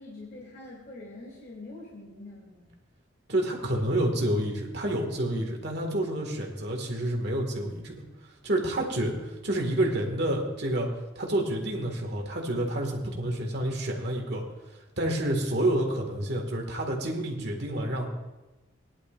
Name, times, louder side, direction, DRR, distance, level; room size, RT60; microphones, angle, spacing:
voice 1, 0.0-2.7, left 2 dB, 45° left, -6 dB, 2.9 m, -44 dB
voice 2, 3.3-8.0 8.4-10.9 11.2-14.4 15.0-18.1, right 1 dB, 55° right, 1 dB, 2.0 m, -29 dB
18.5 x 11.0 x 2.6 m, 1.1 s
head